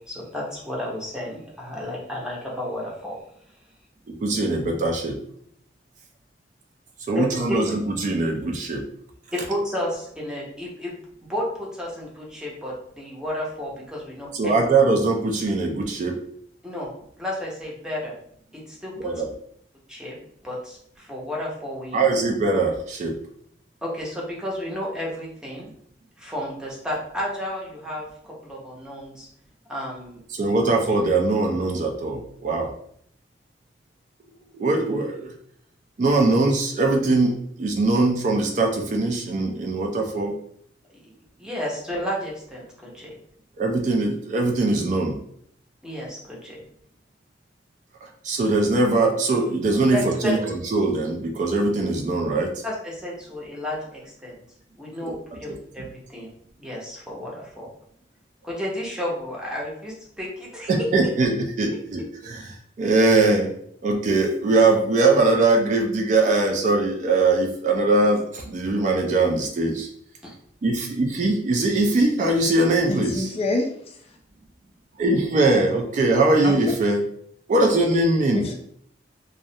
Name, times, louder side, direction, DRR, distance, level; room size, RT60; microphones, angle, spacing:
voice 1, 0.1-3.2 7.1-7.3 9.3-10.9 11.3-14.5 16.6-16.9 17.2-18.1 18.5-19.1 19.9-20.1 20.4-22.0 23.8-25.7 26.2-29.3 29.7-30.2 40.9-41.1 41.4-43.1 45.8-46.6 49.9-50.4 52.6-54.3 54.8-56.3 56.6-57.7 58.4-60.7 70.2-70.3, left 1 dB, 5° right, -4 dB, 0.6 m, -32 dB
voice 2, 4.1-5.2 7.1-8.8 14.3-16.2 19.0-19.3 21.9-23.1 30.3-32.7 34.5-35.3 36.0-40.4 43.6-45.2 48.0-52.5 55.8-55.9 60.7-63.5 63.8-69.9 70.6-73.3 75.0-77.0 77.5-78.4, right 2 dB, 45° right, 2 dB, 0.3 m, -21 dB
voice 3, 72.9-74.2 76.4-76.6 78.3-78.5, left 2 dB, 35° left, 2 dB, 0.3 m, -27 dB
2.3 x 2.0 x 2.7 m, 0.67 s
head